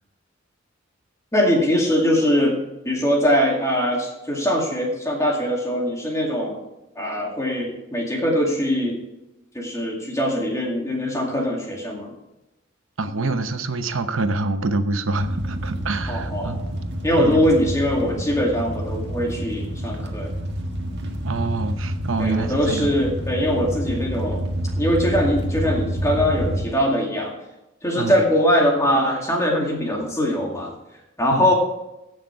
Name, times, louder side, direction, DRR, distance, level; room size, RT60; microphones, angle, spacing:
voice 1, 1.3-2.6 2.9-6.6 7.0-9.0 9.5-12.1 16.1-16.6 17.0-20.3 22.2-24.5 24.8-27.3 27.8-30.8 31.2-31.5, equal, 15° left, 0 dB, 2.2 m, -22 dB
voice 2, 13.0-16.6 17.2-17.4 21.2-22.9 27.9-28.2 31.3-31.5, right 3 dB, 75° right, 9 dB, 0.9 m, -26 dB
sound 1, 15.2-26.7, equal, 55° right, 1.6 m, -28 dB
16.0 x 6.7 x 4.6 m, 0.94 s
head